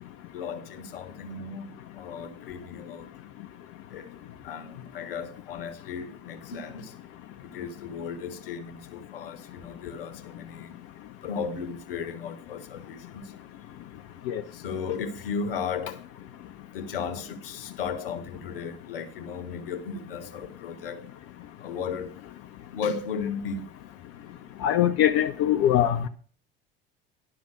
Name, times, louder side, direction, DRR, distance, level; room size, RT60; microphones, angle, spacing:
voice 1, 0.3-3.1 3.9-4.1 4.4-6.9 7.4-10.7 11.2-13.2 14.5-16.0 16.7-21.0 21.6-22.1 22.7-23.6, left 6 dB, 70° left, 1.1 m, -35 dB
voice 2, 24.6-26.1, left 11 dB, 50° left, 0.8 m, -22 dB
11.0 x 5.9 x 6.2 m
figure-of-eight pair, 65°, 29 cm